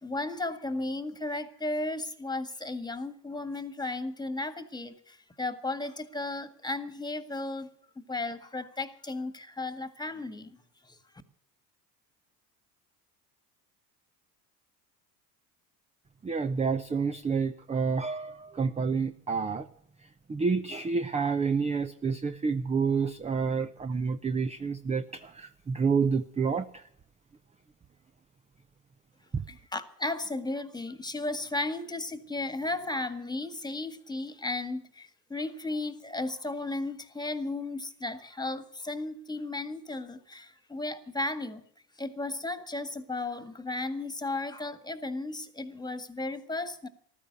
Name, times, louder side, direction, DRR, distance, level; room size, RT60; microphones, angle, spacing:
voice 1, 0.0-7.7 8.0-10.6 10.9-11.0 29.5-41.6 42.0-46.9, left 2 dB, 10° left, 1.8 m, -35 dB
voice 2, 16.2-19.7 20.3-26.8 29.3-29.4, right 5 dB, 15° right, 0.7 m, -29 dB
15.0 x 13.0 x 6.9 m
hypercardioid pair, 80°, 48 cm